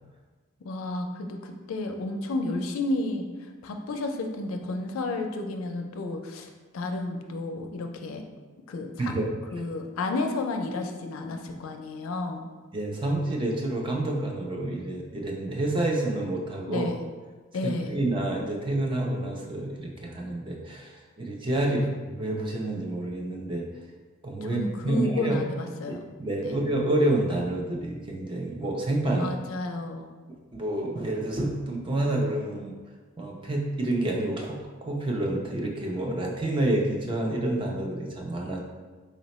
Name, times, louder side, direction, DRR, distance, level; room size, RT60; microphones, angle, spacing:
voice 1, 0.6-8.2 8.7-9.1 9.5-12.4 16.7-17.0 17.5-17.9 24.4-26.0 26.4-26.6 29.2-30.1, left 2 dB, 80° left, 4 dB, 0.4 m, -32 dB
voice 2, 12.7-16.9 17.6-23.7 24.2-25.4 25.9-29.3 30.5-32.7 33.2-38.6, right 1 dB, 25° right, 0 dB, 0.4 m, -28 dB
4.1 x 2.0 x 4.0 m, 1.3 s
head